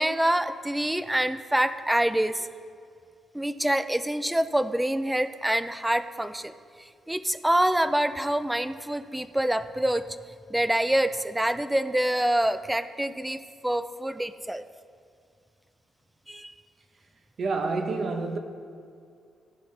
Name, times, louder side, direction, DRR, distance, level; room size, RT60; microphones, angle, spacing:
voice 1, 0.0-2.5 3.3-6.5 6.8-10.0 10.5-14.6 16.3-16.5, right 1 dB, 5° right, 12 dB, 0.3 m, -26 dB
voice 2, 17.4-18.4, right 3 dB, 45° right, 5 dB, 0.8 m, -28 dB
14.5 x 5.6 x 3.2 m, 2.3 s
cardioid pair, 130°, 0 cm